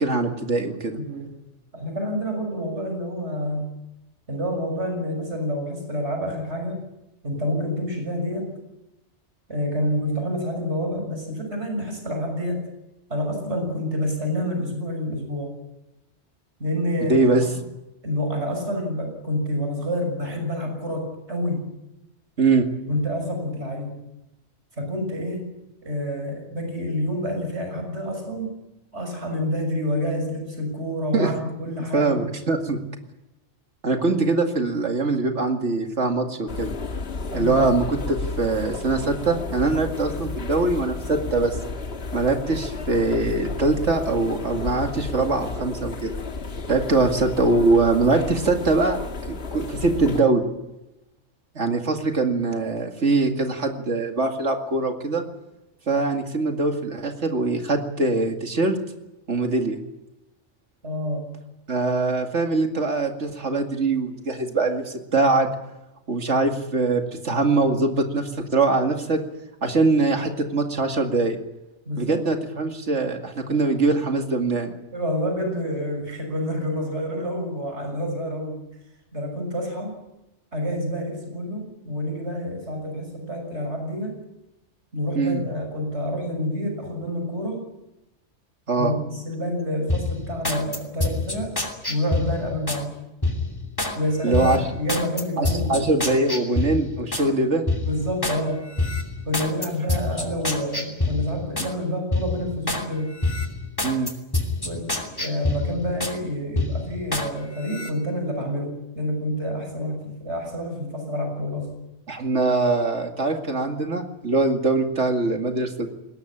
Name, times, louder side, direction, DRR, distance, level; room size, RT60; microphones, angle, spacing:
voice 1, 0.0-1.0 17.0-17.4 22.4-22.7 31.1-31.3 31.9-32.8 33.8-36.7 37.3-41.6 42.1-46.2 46.7-49.0 49.3-50.4 51.6-55.2 55.9-58.8 59.3-59.8 61.7-65.5 66.1-69.2 69.6-71.4 72.0-74.8 85.1-85.4 88.7-88.9 94.2-94.6 95.4-97.6 103.8-104.1 112.1-115.9, right 3 dB, 90° right, 4 dB, 2.6 m, -22 dB
voice 2, 0.9-1.3 1.7-3.7 4.3-6.8 7.2-8.5 9.5-12.6 13.1-15.5 16.6-17.5 18.0-21.7 22.9-23.9 24.8-25.4 25.8-28.5 28.9-32.2 37.3-37.7 47.0-47.1 60.8-61.3 71.8-72.2 74.9-78.6 79.1-80.0 80.5-84.2 84.9-87.6 88.8-91.5 91.9-92.9 93.9-95.9 97.8-98.7 99.2-103.1 104.6-111.7, equal, 70° right, 4 dB, 6.6 m, -28 dB
sound 1, 36.5-50.2, left 3 dB, 60° left, 1.7 m, -32 dB
sound 2, 89.9-92.8 93.2-94.0 94.3-97.3 97.7-98.4 98.8-101.7 102.1-102.9 103.2-106.2 106.6-107.3 107.6-107.9, left 2 dB, 20° left, 2.8 m, -27 dB
21.0 x 18.5 x 9.9 m, 0.97 s
omnidirectional pair, 1.2 m